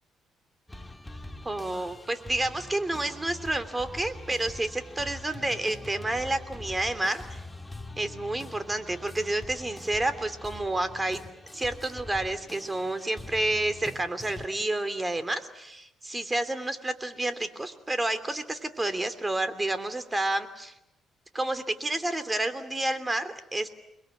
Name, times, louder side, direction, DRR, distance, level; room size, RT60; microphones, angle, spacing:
sound 1, 0.7-14.5, left 2 dB, 10° left, 2.0 m, -44 dB
voice 1, 1.4-7.4 8.0-11.2 11.5-20.7 21.3-23.7, right 2 dB, 15° right, 11 dB, 3.0 m, -30 dB
29.5 x 22.0 x 9.3 m, 0.88 s
cardioid pair, 90°, 0 cm